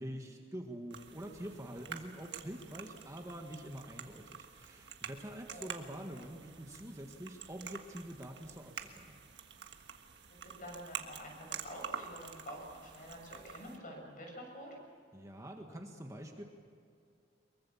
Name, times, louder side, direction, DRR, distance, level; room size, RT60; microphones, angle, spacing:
voice 1, 0.0-9.2 15.1-16.4, right 1 dB, 15° right, 2 dB, 1.6 m, -46 dB
sound 1, 0.9-13.8, right 7 dB, 65° right, 1.6 m, -48 dB
voice 2, 10.4-14.8, equal, 45° left, 1 dB, 6.8 m, -48 dB
23.5 x 22.5 x 7.2 m, 2.4 s
head